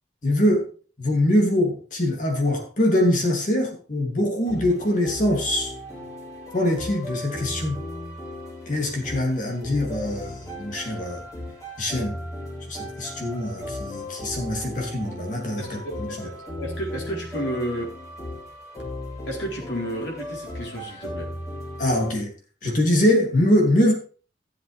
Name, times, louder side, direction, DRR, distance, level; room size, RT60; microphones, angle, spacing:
voice 1, 0.2-0.7 1.0-5.7 6.5-7.8 8.7-11.2 11.8-12.2 12.7-16.1 21.8-22.3 22.6-23.9, left 1 dB, 45° left, 1 dB, 2.8 m, -23 dB
sound 1, 4.5-22.1, left 1 dB, 20° left, 3.4 m, -36 dB
voice 2, 15.6-17.8 19.3-21.3, equal, 80° left, -2 dB, 4.2 m, -32 dB
14.0 x 7.9 x 3.4 m, 0.39 s
head